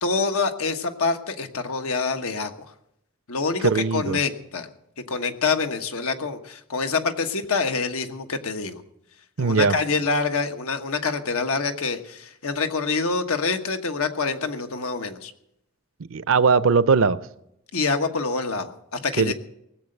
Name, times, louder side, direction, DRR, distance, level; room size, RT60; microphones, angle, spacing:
voice 1, 0.0-2.5 3.3-4.7 5.1-8.8 9.4-15.3 17.7-19.3, left 4 dB, 85° left, 7 dB, 1.3 m, -26 dB
voice 2, 3.6-4.2 9.4-9.8 16.1-17.2 19.2-19.3, right 5 dB, 65° right, 16 dB, 0.6 m, -19 dB
19.0 x 7.7 x 7.8 m, 0.79 s
head